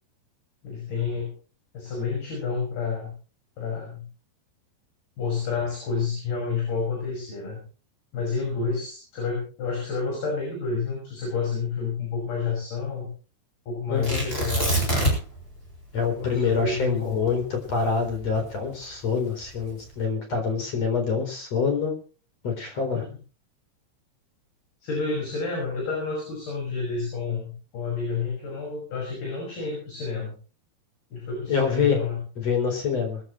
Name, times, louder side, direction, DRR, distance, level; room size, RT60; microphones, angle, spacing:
voice 1, 0.6-1.3 1.7-3.1 3.6-4.0 5.2-7.6 8.1-13.1 13.7-15.0 16.1-17.2 22.9-23.1 24.8-30.4 31.1-32.2, left 4 dB, 55° left, 0 dB, 7.7 m, -29 dB
voice 2, 13.9-14.3 15.9-22.0 22.4-23.0 31.5-32.0 32.4-33.2, left 6 dB, 35° left, 5 dB, 4.8 m, -26 dB
Tearing, 14.0-15.4 15.7-15.8 16.3-18.7 19.4-19.9, right 1 dB, 10° left, 7.7 m, -26 dB
22.0 x 14.5 x 3.2 m, 0.37 s
omnidirectional pair, 5.2 m